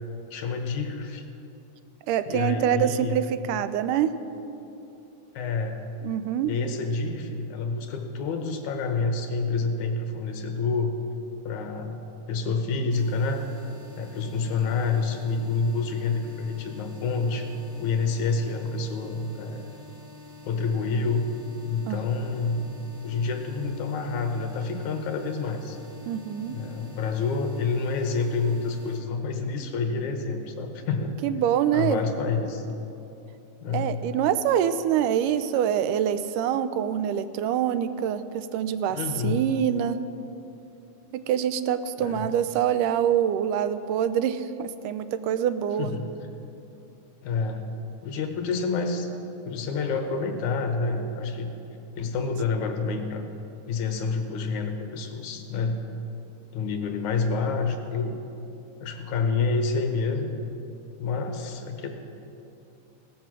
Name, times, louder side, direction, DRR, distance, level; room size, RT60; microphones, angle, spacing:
voice 1, 0.3-1.2 2.3-3.3 5.3-5.8 6.5-11.0 11.4-13.4 14.0-17.5 17.8-19.7 20.5-21.3 21.7-22.6 23.0-25.8 26.5-31.2 31.7-32.7 33.6-34.0 38.9-39.4 42.0-42.3 45.8-46.1 47.2-47.6 48.0-49.1 49.5-51.5 52.0-53.3 53.7-55.8 56.5-58.2 58.8-60.3 61.0-61.9, left 4 dB, 70° left, 5 dB, 2.4 m, -28 dB
voice 2, 2.1-4.1 6.0-6.5 21.9-22.0 26.1-26.6 31.2-32.0 33.7-40.0 41.1-45.9, right 9 dB, 85° right, 12 dB, 2.2 m, -25 dB
sound 1, 12.9-29.0, left 2 dB, 35° right, 0.9 m, -47 dB
17.0 x 13.5 x 6.2 m, 2.8 s
omnidirectional pair, 3.7 m